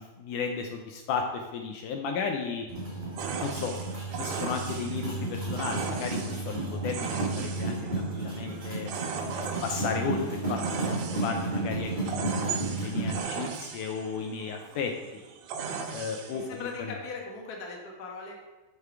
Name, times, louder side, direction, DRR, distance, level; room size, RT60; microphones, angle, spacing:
voice 1, 0.0-2.7 3.4-3.8 4.2-8.9 9.3-11.9 12.2-14.9 15.9-17.0, left 5 dB, 75° left, 3 dB, 2.1 m, -34 dB
sound 1, 2.7-13.2, right 2 dB, 20° right, 1.3 m, -33 dB
sound 2, 3.2-16.8, right 5 dB, 80° right, 2.5 m, -38 dB
voice 2, 16.3-18.4, left 4 dB, 45° left, -1 dB, 1.3 m, -39 dB
8.2 x 6.8 x 4.7 m, 1.1 s
omnidirectional pair, 4.0 m